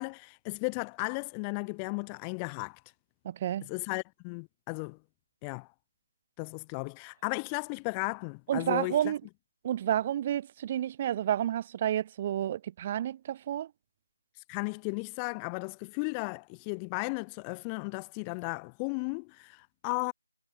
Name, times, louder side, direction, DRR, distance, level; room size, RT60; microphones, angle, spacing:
voice 1, 0.0-2.8 3.7-5.0 5.4-5.7 6.4-9.1 14.5-20.1, left 36 dB, 15° left, 1.3 m, -35 dB
voice 2, 3.2-3.7 8.5-9.2 9.6-13.7, right 11 dB, 25° right, 1.0 m, -30 dB
figure-of-eight pair, 160°, 0 cm